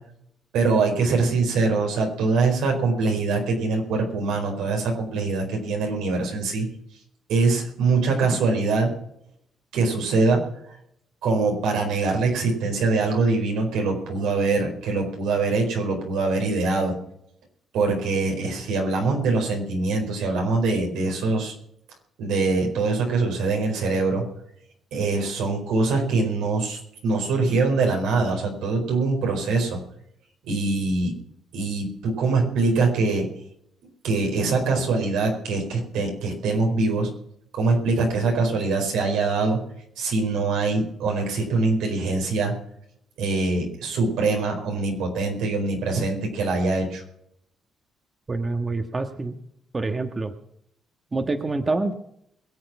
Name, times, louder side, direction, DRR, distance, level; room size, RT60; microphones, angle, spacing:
voice 1, 0.5-6.7 7.3-8.9 9.7-10.4 11.2-16.9 17.7-21.5 22.2-24.2 24.9-29.8 30.5-31.1 31.5-33.3 34.0-37.1 37.5-39.6 40.0-42.5 43.2-47.0, right 3 dB, 90° right, 2 dB, 4.5 m, -23 dB
voice 2, 48.3-49.4 49.7-50.3 51.1-51.9, right 3 dB, 30° right, 6 dB, 1.4 m, -26 dB
22.5 x 7.7 x 6.0 m, 0.73 s
cardioid pair, 90°, 0 cm